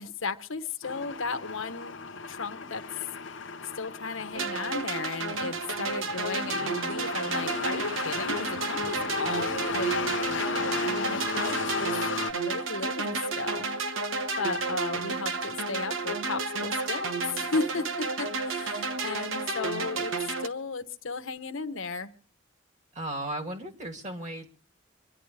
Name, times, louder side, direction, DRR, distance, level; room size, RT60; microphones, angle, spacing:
voice 1, 0.0-2.0 2.3-2.8 3.7-11.9 12.3-13.6 14.4-22.1, left 4 dB, 85° left, 8 dB, 1.2 m, -35 dB
sound 1, 0.8-12.3, left 3 dB, 70° left, 0.7 m, -35 dB
sound 2, 4.3-20.5, right 3 dB, 85° right, 1.1 m, -31 dB
voice 2, 22.9-24.5, right 1 dB, 35° right, 3 dB, 2.6 m, -35 dB
26.0 x 11.0 x 3.3 m, 0.43 s
head